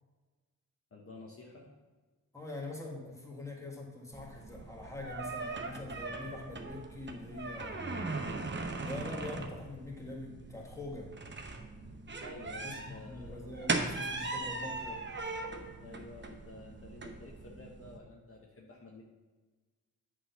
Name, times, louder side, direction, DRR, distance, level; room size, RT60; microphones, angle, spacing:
voice 1, 0.9-1.7 12.2-13.5 15.8-19.0, left 3 dB, 40° left, -1 dB, 1.0 m, -51 dB
voice 2, 2.3-7.9 8.8-11.1 12.6-15.0, left 2 dB, 10° left, -1 dB, 1.6 m, -44 dB
sound 1, 4.1-18.0, right 3 dB, 35° right, 0.9 m, -39 dB
7.9 x 3.7 x 5.7 m, 1.3 s
cardioid pair, 75°, 33 cm